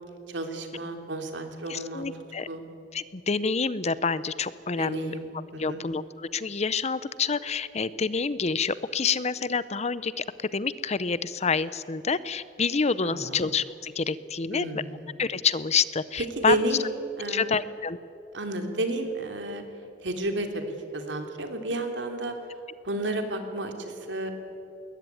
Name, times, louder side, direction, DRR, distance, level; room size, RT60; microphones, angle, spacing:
voice 1, 0.3-2.0 2.5-2.6 4.8-5.8 13.0-13.5 14.5-15.1 16.3-16.9 17.2-17.6 18.3-19.6 20.0-20.6 20.9-22.3 22.8-24.3, right 1 dB, 85° right, 5 dB, 2.9 m, -31 dB
voice 2, 1.7-2.5 2.9-5.2 5.6-10.2 10.5-14.8 15.2-16.6 17.3-18.0, left 5 dB, 40° left, 17 dB, 0.7 m, -28 dB
20.5 x 20.0 x 9.4 m, 2.7 s
head